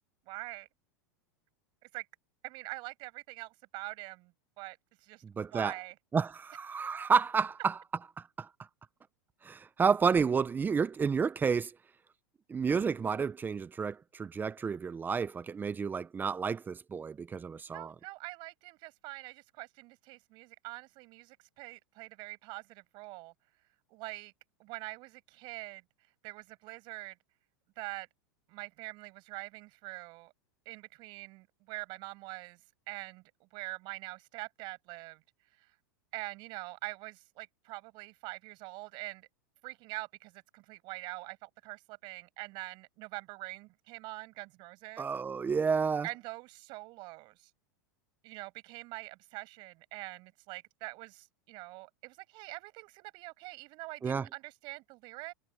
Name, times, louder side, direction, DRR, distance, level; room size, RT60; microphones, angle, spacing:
voice 1, 0.3-0.7 1.9-2.1 2.4-5.2 5.5-5.9 17.7-23.3 23.9-24.3 24.6-25.8 26.2-27.2 27.8-28.1 28.5-30.3 30.7-32.6 32.9-35.2 35.6-35.7 36.1-39.3 39.6-45.1 46.0-47.5 48.2-55.3, right 23 dB, 50° right, 7.8 m, -44 dB
voice 2, 5.2-5.7 6.1-7.8 8.4-8.5 9.4-11.7 12.5-17.9 45.0-46.1 54.0-54.3, right 5 dB, 20° right, 1.0 m, -30 dB
hypercardioid pair, 110°, 10 cm